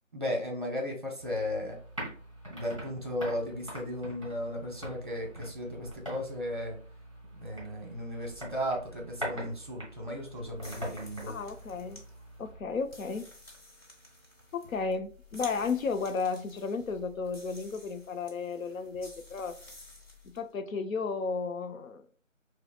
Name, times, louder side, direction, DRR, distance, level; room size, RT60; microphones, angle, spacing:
voice 1, 0.1-1.8 2.5-6.8 7.3-11.4, equal, 40° right, 0.8 m, -35 dB
sound 1, 1.2-12.6, equal, 25° right, 1.1 m, -44 dB
sound 2, 10.5-20.4, left 1 dB, 50° left, 1.1 m, -53 dB
voice 2, 11.3-12.0 12.4-13.3 14.5-19.6 20.3-22.1, left 4 dB, 85° left, 0.6 m, -33 dB
sound 3, 12.5-13.9 14.6-16.2 16.8-18.2 18.9-20.5, left 7 dB, 25° left, 1.5 m, -58 dB
5.1 x 2.0 x 2.3 m
figure-of-eight pair, 175°, 40 cm